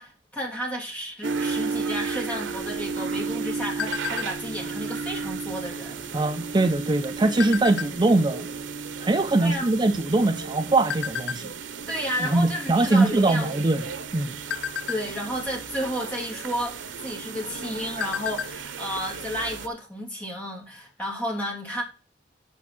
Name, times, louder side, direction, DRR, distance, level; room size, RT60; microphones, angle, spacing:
voice 1, 0.0-6.2 9.4-9.7 11.9-13.5 14.9-21.8, equal, 10° left, 2.8 m, -32 dB
sound 1, 1.2-19.7, right 5 dB, 90° right, 0.7 m, -34 dB
sound 2, 2.7-4.6 5.1-5.4 5.6-6.0 6.7-8.2 8.8-8.9 9.1-10.4 10.9-11.4 11.9-12.2 12.5-12.7 13.1-13.7 14.1-15.5 16.6-16.7 17.1-17.2 17.6-18.7 18.9-19.0 19.4-19.5, left 9 dB, 65° left, 0.5 m, -33 dB
voice 2, 6.1-8.5 9.0-11.5 12.2-13.8 14.1-14.4, right 2 dB, 25° right, 0.5 m, -22 dB
8.5 x 5.4 x 5.9 m
head